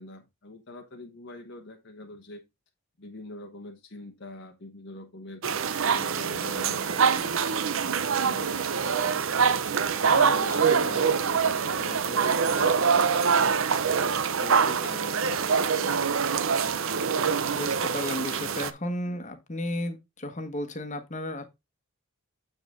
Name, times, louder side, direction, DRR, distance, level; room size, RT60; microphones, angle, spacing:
voice 1, 0.0-2.4 3.0-5.5 5.9-9.3 10.0-13.8 14.4-16.8, left 2 dB, 55° left, 1.1 m, -44 dB
sound 1, 5.4-18.7, right 6 dB, 60° right, 0.6 m, -25 dB
voice 2, 17.5-21.4, left 1 dB, 35° left, 1.2 m, -34 dB
7.9 x 5.3 x 3.7 m
head